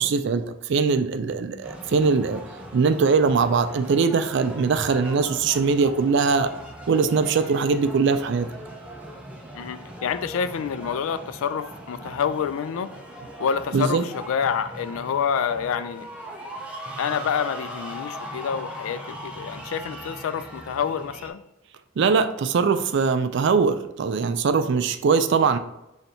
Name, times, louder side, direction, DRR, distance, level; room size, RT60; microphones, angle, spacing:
voice 1, 0.0-2.4 2.7-6.5 6.9-8.5 13.7-14.1 22.0-25.6, right 5 dB, 55° right, 9 dB, 0.3 m, -21 dB
sound 1, 1.6-21.3, right 1 dB, 5° right, 0.5 m, -39 dB
voice 2, 9.5-12.9 13.4-16.1 17.0-21.4, left 7 dB, 75° left, 12 dB, 0.3 m, -27 dB
4.1 x 3.2 x 2.8 m, 0.90 s
head